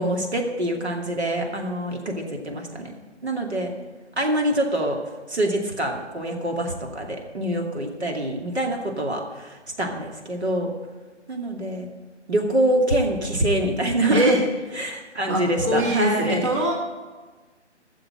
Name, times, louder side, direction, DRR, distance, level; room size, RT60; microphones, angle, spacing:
voice 1, 0.0-2.9 3.2-3.7 4.2-5.0 5.3-10.7 11.3-11.9 12.3-14.3 14.7-16.5, right 1 dB, 65° right, 1 dB, 2.6 m, -25 dB
voice 2, 14.1-14.4 15.2-16.7, right 1 dB, 25° right, -1 dB, 1.3 m, -22 dB
14.0 x 7.0 x 7.7 m, 1.3 s
figure-of-eight pair, 150°, 35 cm